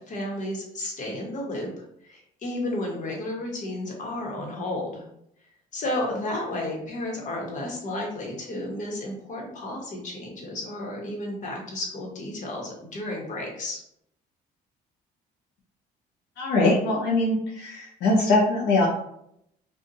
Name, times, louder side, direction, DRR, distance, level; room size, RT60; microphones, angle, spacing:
voice 1, 0.0-5.0 5.7-13.8, left 1 dB, 45° left, -1 dB, 1.2 m, -32 dB
voice 2, 16.4-18.9, left 2 dB, 75° left, -3 dB, 0.7 m, -22 dB
2.6 x 2.4 x 3.9 m, 0.74 s
cardioid pair, 110°, 17 cm